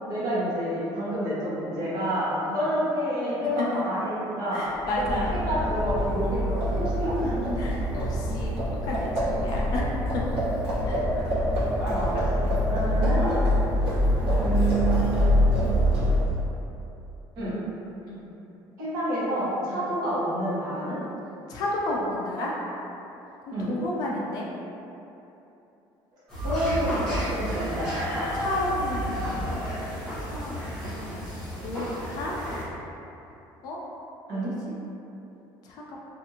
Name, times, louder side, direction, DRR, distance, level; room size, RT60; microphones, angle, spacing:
voice 1, 0.1-2.3 2.5-4.6 5.1-7.6 11.9-12.1 12.7-13.3 14.4-15.7 17.4-17.6 18.8-21.0 23.5-23.7 26.4-27.0 27.3-28.1 34.3-34.5, right 1 dB, 45° right, -10 dB, 1.0 m, -28 dB
voice 2, 4.5-5.4 7.6-8.5 8.8-10.4 10.8-11.0 12.1-12.8 17.4-17.5 18.1-18.3 19.7-19.8 21.5-22.5 23.7-24.5 26.4-27.1 28.3-29.7 30.2-32.4 33.6-33.8 34.3-34.7 35.6-36.0, left 2 dB, 45° left, -3 dB, 0.4 m, -33 dB
Livestock farm animals working animals, 4.8-16.4, equal, 80° right, 0.9 m, -25 dB
sound 1, 26.3-32.6, equal, 10° left, 1.1 m, -31 dB
2.6 x 2.4 x 2.7 m, 2.9 s
cardioid pair, 180°, 9 cm